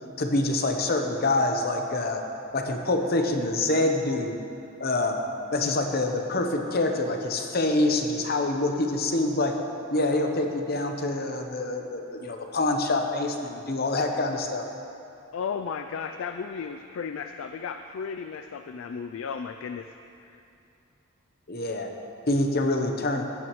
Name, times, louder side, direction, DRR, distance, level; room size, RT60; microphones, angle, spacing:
voice 1, 0.2-2.2 2.5-4.4 4.8-5.2 5.5-9.6 9.9-14.7 21.5-21.9 22.3-23.2, left 2 dB, 45° left, 4 dB, 0.8 m, -26 dB
voice 2, 15.3-19.9 20.2-20.4, left 6 dB, 70° left, 7 dB, 0.3 m, -34 dB
15.0 x 9.0 x 3.1 m, 2.7 s
head